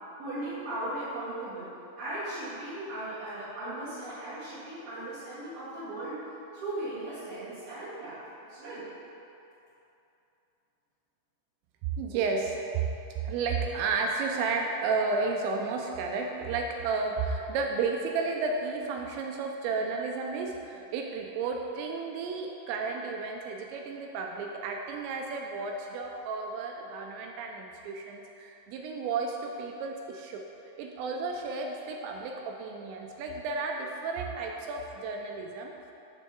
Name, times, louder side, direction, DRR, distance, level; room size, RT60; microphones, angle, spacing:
voice 1, 0.2-1.7 2.0-6.2 6.5-8.2 8.5-8.8, right 1 dB, 60° right, -15 dB, 3.6 m, -37 dB
voice 2, 12.0-12.5 13.3-30.5 30.8-35.7, right 4 dB, 85° right, 2 dB, 2.7 m, -32 dB
9.0 x 3.5 x 6.8 m, 2.9 s
omnidirectional pair, 5.4 m